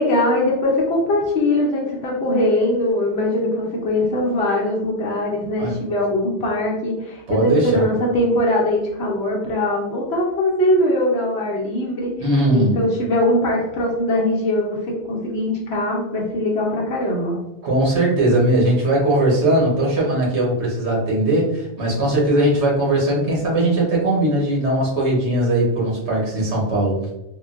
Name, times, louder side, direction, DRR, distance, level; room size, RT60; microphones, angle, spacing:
voice 1, 0.0-12.1 12.5-17.4, left 1 dB, 70° left, -3 dB, 0.9 m, -21 dB
voice 2, 7.3-7.8 12.2-12.8 17.6-27.1, right 1 dB, 75° right, -4 dB, 1.4 m, -19 dB
3.7 x 2.1 x 2.4 m, 0.91 s
omnidirectional pair, 1.2 m